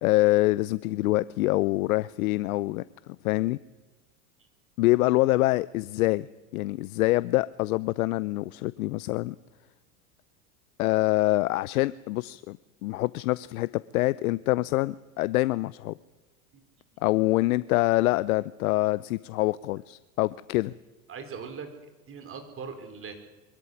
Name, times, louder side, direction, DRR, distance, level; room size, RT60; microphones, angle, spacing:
voice 1, 0.0-2.8 3.2-3.6 4.8-6.3 6.5-9.4 10.8-12.6 12.8-15.9 17.0-20.7, left 19 dB, 75° left, 18 dB, 0.7 m, -25 dB
voice 2, 21.1-21.7 22.1-23.1, right 5 dB, 30° right, 6 dB, 4.6 m, -40 dB
23.0 x 14.0 x 9.8 m, 1.3 s
hypercardioid pair, 110°, 43 cm